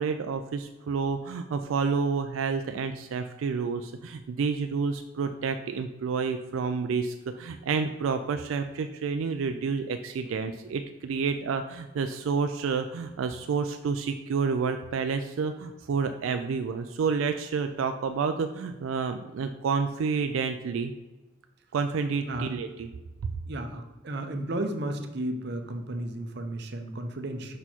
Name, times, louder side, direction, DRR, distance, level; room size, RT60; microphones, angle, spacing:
voice 1, 0.0-20.9 21.7-22.9 23.2-23.3, right 5 dB, 85° right, 7 dB, 0.4 m, -29 dB
voice 2, 23.5-27.6, right 1 dB, 55° right, 6 dB, 0.7 m, -33 dB
5.4 x 4.4 x 4.3 m, 1.1 s
head